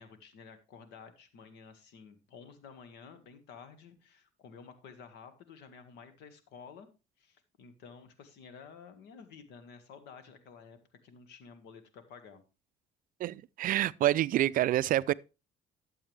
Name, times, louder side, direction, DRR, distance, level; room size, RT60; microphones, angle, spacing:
voice 1, 0.0-6.9 7.2-12.4, left 6 dB, 85° left, 1.7 m, -52 dB
voice 2, 13.2-15.1, right 13 dB, 55° right, 0.4 m, -27 dB
12.5 x 7.3 x 3.3 m
cardioid pair, 110°, 17 cm